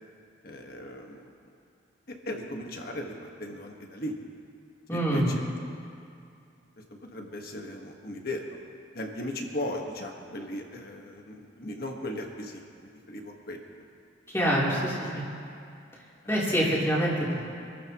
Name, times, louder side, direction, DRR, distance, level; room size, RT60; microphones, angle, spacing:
voice 1, 0.4-1.3 2.3-3.1 3.4-4.1 4.9-5.4 6.8-8.6 8.9-13.6, left 1 dB, 50° left, 2 dB, 1.6 m, -37 dB
voice 2, 4.9-5.3 14.3-15.2 16.3-17.4, equal, 15° left, -7 dB, 3.6 m, -25 dB
27.0 x 14.0 x 3.1 m, 2.5 s
head